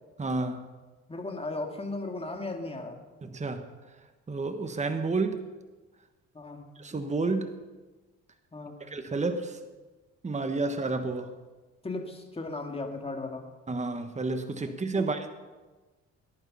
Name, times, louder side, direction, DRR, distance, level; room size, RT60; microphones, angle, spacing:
voice 1, 0.2-0.7 3.2-3.7 4.3-5.4 6.8-7.6 8.8-9.6 10.2-11.3 13.7-15.3, right 3 dB, 25° right, 7 dB, 1.3 m, -30 dB
voice 2, 1.1-3.0 6.3-6.6 8.5-8.8 11.8-13.5 14.9-15.1, left 2 dB, 20° left, 3 dB, 2.4 m, -36 dB
18.5 x 11.0 x 5.6 m, 1.3 s
cardioid pair, 90°, 30 cm